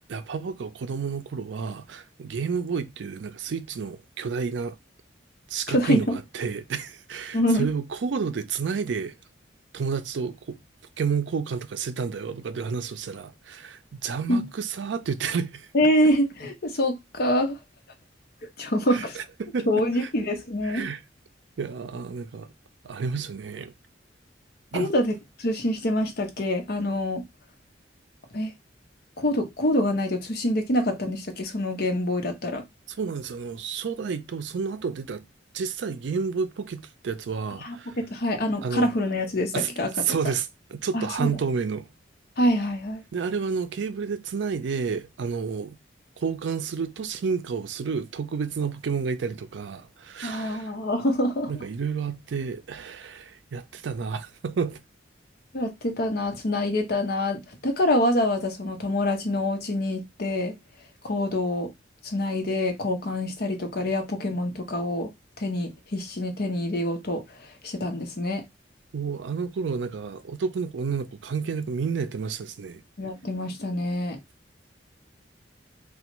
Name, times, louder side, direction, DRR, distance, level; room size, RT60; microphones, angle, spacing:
voice 1, 0.1-4.8 5.5-9.1 9.7-10.6 11.0-15.7 18.9-20.1 20.6-21.0 21.6-22.5 22.8-23.7 24.7-24.9 32.9-35.2 35.5-38.0 38.6-38.9 39.5-39.7 40.0-41.9 43.1-45.8 46.2-50.7 51.5-54.8 68.9-72.8, right 5 dB, 70° right, 0.4 m, -30 dB
voice 2, 5.7-6.2 7.3-7.7 14.3-14.5 15.7-17.6 18.6-19.2 19.7-20.9 24.7-27.2 28.3-28.5 29.2-32.6 37.6-39.9 40.9-41.4 42.4-43.0 50.2-51.5 55.5-60.5 61.0-61.7 62.0-65.1 65.4-67.2 67.6-68.4 73.0-74.2, left 1 dB, 55° left, 0.8 m, -26 dB
3.3 x 2.3 x 3.0 m
head